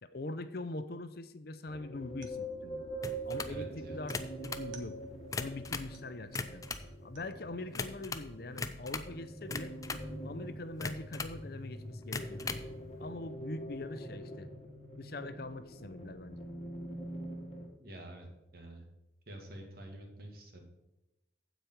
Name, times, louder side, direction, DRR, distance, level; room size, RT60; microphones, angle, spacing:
voice 1, 0.0-2.9 3.3-5.0 5.4-6.6 7.0-9.8 10.2-12.6 13.0-14.5 15.0-16.5, left 2 dB, 55° left, 12 dB, 0.6 m, -43 dB
sound 1, 1.7-17.7, right 1 dB, 35° left, 1.5 m, -44 dB
sound 2, 2.1-7.5, right 4 dB, 80° right, 1.2 m, -60 dB
sound 3, 3.0-3.6 4.0-4.7 5.2-5.9 6.2-6.9 7.7-8.3 8.6-9.1 9.5-10.1 10.8-11.4 12.0-12.7, left 4 dB, 20° left, 0.4 m, -39 dB
voice 2, 3.5-4.0 17.8-18.3 18.5-18.8 19.3-20.6, right 1 dB, 50° right, 2 dB, 1.8 m, -48 dB
15.0 x 5.1 x 4.5 m, 0.96 s
head